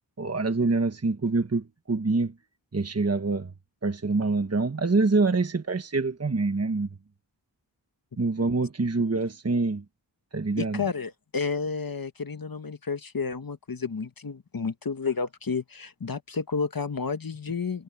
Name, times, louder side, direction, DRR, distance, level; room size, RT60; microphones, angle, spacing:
voice 1, 0.2-2.3 2.7-3.5 3.8-6.9 8.2-9.8 10.3-10.8, right 3 dB, 35° right, 1.4 m, -25 dB
voice 2, 10.6-17.8, left 5 dB, 50° left, 1.3 m, -31 dB
wide cardioid pair, 60°, 43 cm